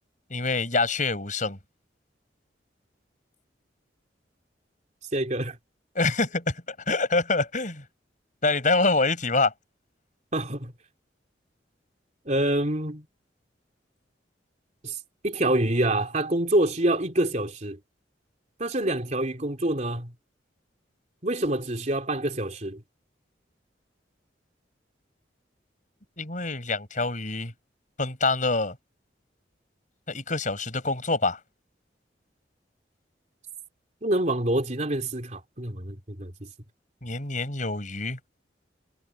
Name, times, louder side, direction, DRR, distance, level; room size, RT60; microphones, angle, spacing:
voice 1, 0.3-1.6 5.9-6.6 6.9-7.8 8.4-9.5 26.2-27.5 28.0-28.7 30.1-31.4 37.0-38.2, left 3 dB, 45° left, 6.3 m, -25 dB
voice 2, 5.1-5.6 10.3-10.7 12.2-13.0 14.8-15.0 15.2-17.8 18.6-20.1 21.2-22.8 34.0-36.5, right 1 dB, 40° right, 3.4 m, -26 dB
head